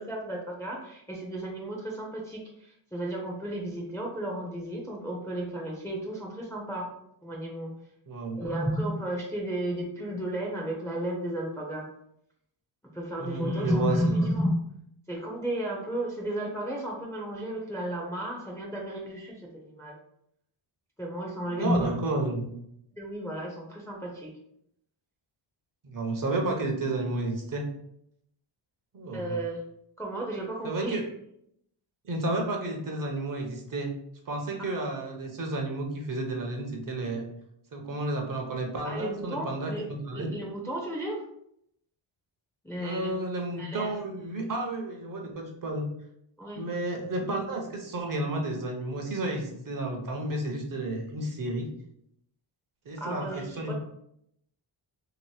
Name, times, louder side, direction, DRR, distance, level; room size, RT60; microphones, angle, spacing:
voice 1, 0.0-6.9 7.2-7.7 8.3-11.9 12.9-14.5 15.1-20.0 21.0-21.9 23.0-24.3 29.1-29.6 30.0-31.0 34.7-34.8 38.8-39.9 40.1-41.2 42.6-43.1 43.6-43.9 46.4-46.6 53.0-53.7, right 1 dB, 5° left, -2 dB, 0.5 m, -33 dB
voice 2, 8.1-8.4 13.2-14.2 21.5-22.5 25.8-27.7 28.9-29.4 30.6-31.0 32.0-33.9 34.3-37.3 37.7-40.3 42.8-45.9 46.6-51.7 52.9-53.7, right 2 dB, 40° right, 2 dB, 0.6 m, -32 dB
2.9 x 2.8 x 3.2 m, 0.73 s
wide cardioid pair, 150°, 50 cm